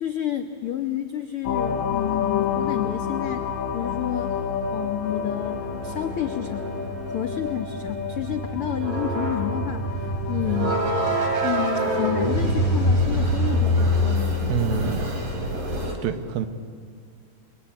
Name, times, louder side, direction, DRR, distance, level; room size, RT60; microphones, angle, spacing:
voice 1, 0.0-3.5 3.7-4.4 4.7-6.7 7.1-10.8 11.4-14.5, left 11 dB, 75° left, 5 dB, 1.2 m, -30 dB
sound 1, 1.4-14.0, left 7 dB, 60° left, 2.3 m, -31 dB
sound 2, 1.7-15.9, equal, 45° right, 5.0 m, -26 dB
voice 2, 14.5-15.1 16.0-16.5, right 7 dB, 85° right, 8 dB, 3.2 m, -26 dB
29.5 x 22.5 x 8.9 m, 2.2 s
omnidirectional pair, 4.2 m